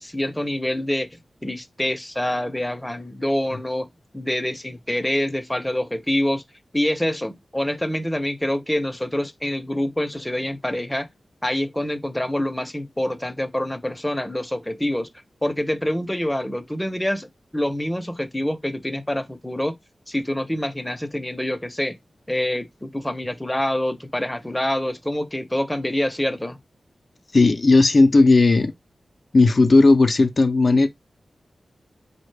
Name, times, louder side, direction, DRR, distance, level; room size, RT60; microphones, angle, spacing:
voice 1, 0.0-3.9 4.1-6.4 6.7-11.1 11.4-15.1 15.4-19.8 20.1-21.9 22.3-26.6, left 1 dB, 10° left, 0.6 m, -26 dB
voice 2, 27.3-28.7 29.3-30.9, left 3 dB, 55° left, 0.4 m, -15 dB
3.8 x 2.1 x 3.2 m
cardioid pair, 50°, 0 cm